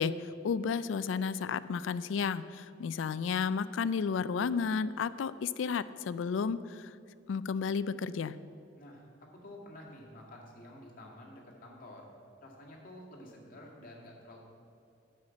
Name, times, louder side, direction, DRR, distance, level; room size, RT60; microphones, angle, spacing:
voice 1, 0.0-6.9 7.3-8.4, left 6 dB, 85° left, 16 dB, 0.4 m, -32 dB
voice 2, 9.4-12.1 12.4-14.4, left 1 dB, 45° left, -2 dB, 1.9 m, -50 dB
9.6 x 5.7 x 7.4 m, 2.5 s
head